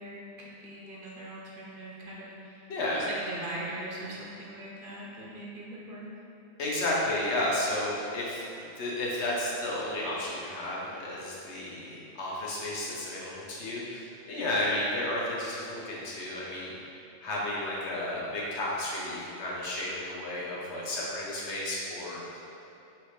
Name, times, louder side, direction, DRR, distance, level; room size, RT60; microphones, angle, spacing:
voice 1, 0.0-2.6 2.9-6.1, right 1 dB, 55° right, -5 dB, 0.8 m, -41 dB
voice 2, 2.7-3.1 6.6-16.8 17.2-22.6, left 1 dB, 75° left, -5 dB, 1.2 m, -32 dB
5.9 x 2.8 x 3.2 m, 2.9 s
omnidirectional pair, 1.2 m